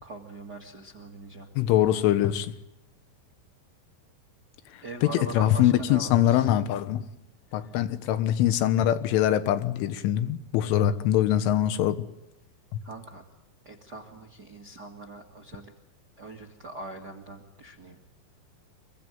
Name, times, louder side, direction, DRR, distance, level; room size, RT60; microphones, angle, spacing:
voice 1, 0.0-1.5 4.8-6.5 7.5-7.7 12.8-13.2 13.6-15.7 16.2-18.0, right 2 dB, 70° right, 0.9 m, -42 dB
voice 2, 1.6-2.5 5.0-5.1 5.4-7.0 7.5-12.1, left 12 dB, 80° left, 3.7 m, -23 dB
26.5 x 23.5 x 9.3 m
omnidirectional pair, 5.6 m